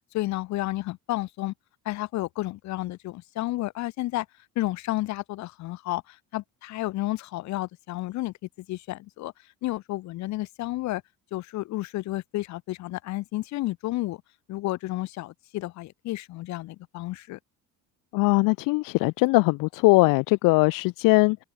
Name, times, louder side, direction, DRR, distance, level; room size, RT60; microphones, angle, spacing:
voice 1, 0.1-1.5 1.8-4.3 4.5-8.3 8.7-9.3 9.6-11.0 11.3-14.2 14.5-17.4, left 17 dB, 55° left, 1.5 m, -31 dB
voice 2, 18.1-21.4, left 25 dB, 70° left, 0.9 m, -20 dB
open air
cardioid pair, 165°, 34 cm